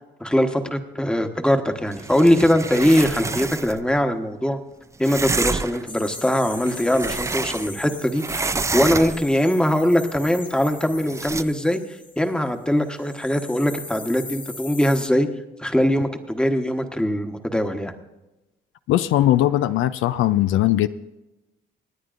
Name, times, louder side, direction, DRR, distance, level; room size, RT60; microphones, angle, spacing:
voice 1, 0.2-4.6 5.0-11.8 12.2-15.3 15.6-17.9, equal, 5° left, 6 dB, 1.1 m, -21 dB
sound 1, 1.9-3.8 5.0-5.9 6.5-7.9 8.1-9.4 11.1-11.4, right 3 dB, 15° right, 0.4 m, -28 dB
sound 2, 5.9-12.5 12.8-15.1, left 3 dB, 25° left, 0.9 m, -40 dB
voice 2, 18.9-20.9, left 13 dB, 85° left, 13 dB, 0.5 m, -19 dB
27.0 x 9.6 x 2.5 m, 1.0 s
cardioid pair, 90°, 20 cm